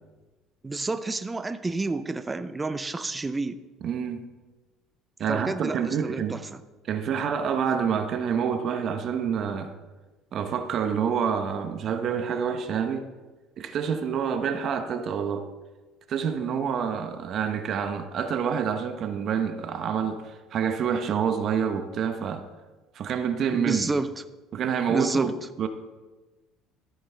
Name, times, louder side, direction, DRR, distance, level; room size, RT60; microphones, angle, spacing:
voice 1, 0.6-3.6 5.3-6.6 23.5-24.1 24.9-25.3, right 3 dB, 15° right, 0.6 m, -29 dB
voice 2, 3.8-4.2 5.2-6.4 6.9-9.7 10.3-13.1 13.6-15.5 16.1-22.4 22.9-23.9 24.5-25.7, right 7 dB, 50° right, 0.9 m, -27 dB
13.5 x 9.3 x 3.4 m
cardioid pair, 110°, 0 cm